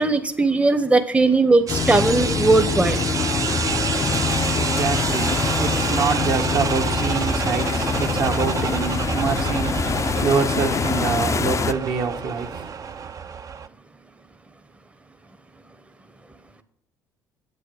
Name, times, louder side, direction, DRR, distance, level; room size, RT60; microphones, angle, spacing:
voice 1, 0.0-3.1, right 3 dB, 15° right, 0.8 m, -18 dB
sound 1, 1.7-11.7, left 6 dB, 30° left, 0.5 m, -25 dB
sound 2, 1.7-13.7, right 6 dB, 35° right, 0.5 m, -28 dB
voice 2, 3.7-13.1, right 5 dB, 55° right, 1.2 m, -26 dB
8.3 x 8.1 x 6.5 m
hypercardioid pair, 55°, 10 cm